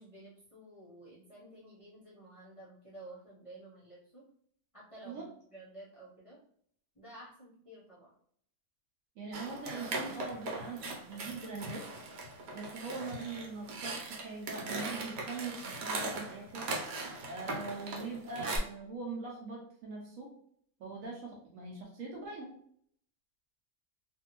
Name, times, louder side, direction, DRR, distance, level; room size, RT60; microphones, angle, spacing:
voice 1, 0.0-4.2 4.7-6.4 6.9-8.1, right 1 dB, 30° left, -8 dB, 0.7 m, -52 dB
voice 2, 9.2-11.9 12.5-16.7 17.3-20.3 20.8-22.5, right 3 dB, 65° right, -2 dB, 1.0 m, -42 dB
sound 1, 9.3-18.6, right 2 dB, 80° right, 1.3 m, -39 dB
2.6 x 2.5 x 2.9 m, 0.64 s
omnidirectional pair, 1.7 m